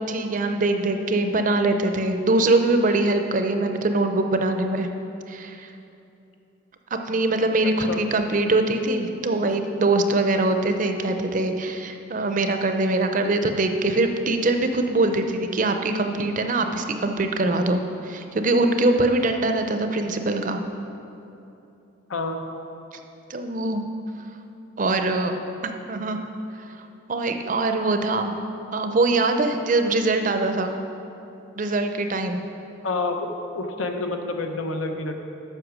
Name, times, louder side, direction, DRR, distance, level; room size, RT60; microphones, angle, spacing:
voice 1, 0.1-4.9 5.3-5.7 6.9-20.6 23.3-23.9 24.8-25.3 25.6-26.2 27.1-28.4 28.7-30.7 31.6-32.4, right 2 dB, 40° right, 6 dB, 0.5 m, -23 dB
voice 2, 32.8-33.3 33.5-35.2, left 3 dB, 80° left, 5 dB, 0.8 m, -28 dB
7.9 x 5.8 x 6.1 m, 2.8 s
head